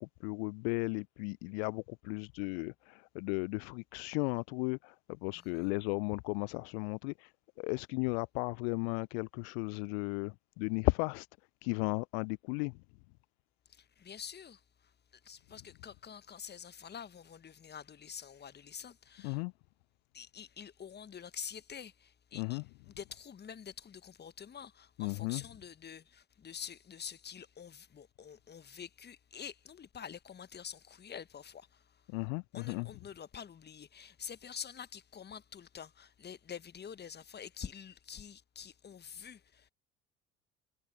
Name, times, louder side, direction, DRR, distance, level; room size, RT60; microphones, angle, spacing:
voice 1, 0.0-7.3 7.6-11.3 11.6-12.8 19.2-19.5 22.3-22.6 25.0-25.4 32.1-32.9, left 38 dB, 55° left, 0.6 m, -35 dB
voice 2, 5.3-5.7 13.7-19.4 20.1-22.6 22.9-32.1 32.5-39.7, left 7 dB, 25° left, 1.4 m, -47 dB
figure-of-eight pair, 60°, 37 cm